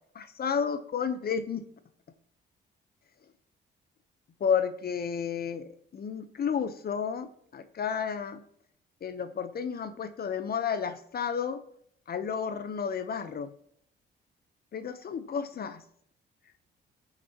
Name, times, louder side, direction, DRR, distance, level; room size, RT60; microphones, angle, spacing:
voice 1, 0.1-1.7 4.4-7.3 7.5-8.4 9.0-11.6 12.1-13.5 14.7-15.8, left 7 dB, 50° left, 11 dB, 1.0 m, -31 dB
19.0 x 6.7 x 3.0 m, 0.65 s
cardioid pair, 90°, 20 cm